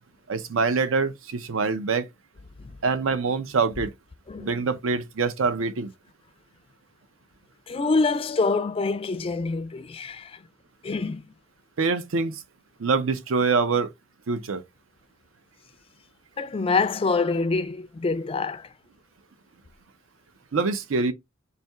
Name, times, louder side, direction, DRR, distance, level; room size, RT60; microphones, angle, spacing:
voice 1, 0.3-2.1 2.8-3.9 4.4-5.9 11.8-12.4 12.8-13.9 14.3-14.6 20.5-21.1, right 4 dB, 75° right, 0.6 m, -25 dB
voice 2, 7.7-10.4 10.8-11.3 16.4-18.7, left 3 dB, 25° left, 0.3 m, -26 dB
4.1 x 2.7 x 3.4 m
head